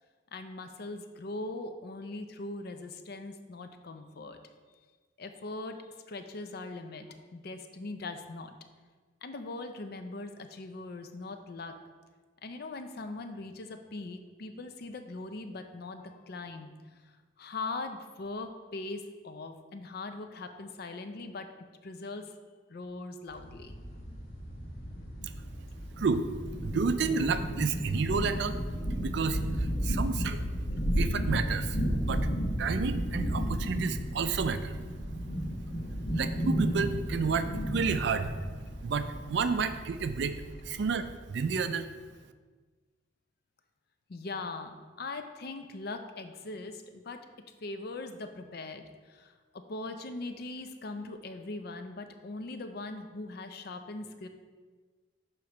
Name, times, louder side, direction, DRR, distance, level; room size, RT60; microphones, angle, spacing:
voice 1, 0.3-4.4 5.2-8.6 9.2-11.8 12.4-16.7 17.0-21.5 21.8-22.4 22.7-23.8 44.1-47.3 47.6-54.3, left 2 dB, 50° left, 7 dB, 0.5 m, -41 dB
sound 1, 23.3-41.1, equal, 70° left, 1.4 m, -33 dB
voice 2, 26.6-28.6 28.9-30.4 31.0-32.3 32.6-34.8 36.1-38.3 38.8-41.9, right 5 dB, 55° right, 10 dB, 0.4 m, -31 dB
6.4 x 3.1 x 5.8 m, 1.4 s
head